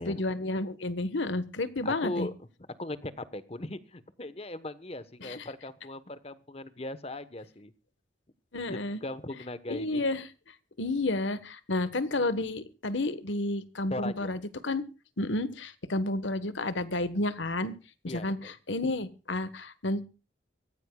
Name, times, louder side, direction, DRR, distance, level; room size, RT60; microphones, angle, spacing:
voice 1, 0.0-2.3 5.2-5.5 8.5-9.0 9.7-10.2 10.8-14.8 15.2-17.7 18.0-20.0, left 2 dB, 80° left, 14 dB, 1.4 m, -31 dB
voice 2, 1.8-2.3 2.8-7.7 8.7-10.0 13.9-14.4 18.1-18.5, left 1 dB, 30° left, 14 dB, 1.2 m, -38 dB
24.5 x 15.0 x 2.3 m, 0.32 s
head